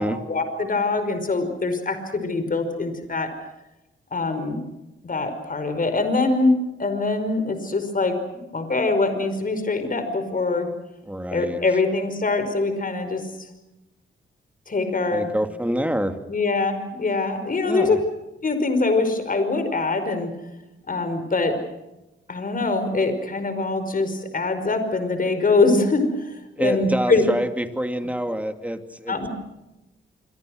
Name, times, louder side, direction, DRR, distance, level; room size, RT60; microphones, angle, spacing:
voice 1, 0.3-3.3 4.1-4.6 5.0-6.5 6.8-8.1 8.5-10.7 11.3-13.2 14.7-15.3 16.3-18.0 18.4-20.3 20.9-21.6 22.3-27.2 29.1-29.3, left 3 dB, 40° left, 8 dB, 5.1 m, -23 dB
voice 2, 11.0-11.6 15.1-16.2 17.6-18.0 26.6-29.3, equal, 5° right, 7 dB, 2.6 m, -26 dB
27.0 x 25.0 x 6.4 m, 0.98 s
cardioid pair, 80°, 21 cm